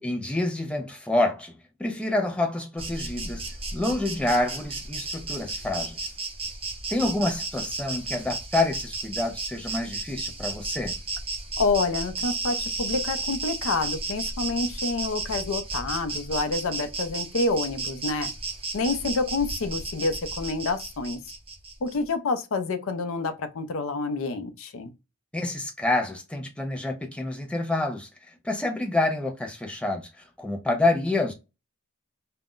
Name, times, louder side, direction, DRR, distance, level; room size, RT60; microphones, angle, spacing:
voice 1, 0.0-1.5 1.8-3.4 3.7-6.0 6.9-10.9 25.3-28.1 28.4-31.3, left 2 dB, 5° left, 0.5 m, -27 dB
Insect, 2.8-22.0, right 3 dB, 25° right, 0.7 m, -33 dB
voice 2, 11.6-18.3 18.7-21.2 21.8-24.9, left 3 dB, 65° left, 0.5 m, -28 dB
2.4 x 2.1 x 3.6 m
head